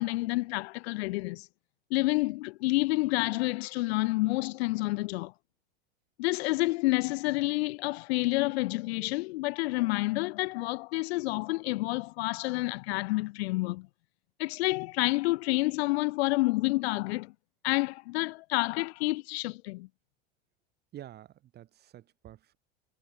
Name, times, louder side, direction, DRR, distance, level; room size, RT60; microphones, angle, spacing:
voice 1, 0.0-1.5 1.9-5.3 6.2-13.9 14.4-17.3 17.6-19.9, left 22 dB, 65° left, 0.6 m, -29 dB
voice 2, 20.9-22.6, right 12 dB, 30° right, 0.7 m, -49 dB
hypercardioid pair, 100°, 35 cm